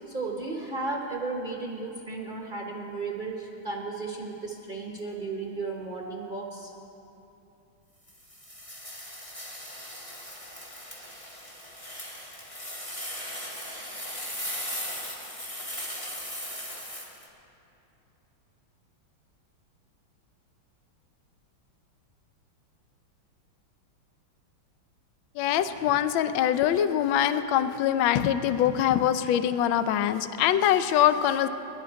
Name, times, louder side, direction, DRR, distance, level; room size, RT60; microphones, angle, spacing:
voice 1, 0.0-6.7, right 3 dB, 40° right, 0 dB, 0.7 m, -34 dB
sound 1, 8.1-17.3, equal, 15° left, 1.9 m, -38 dB
voice 2, 25.4-31.5, left 10 dB, 75° left, 11 dB, 1.3 m, -23 dB
20.5 x 11.0 x 4.6 m, 2.8 s
omnidirectional pair, 2.3 m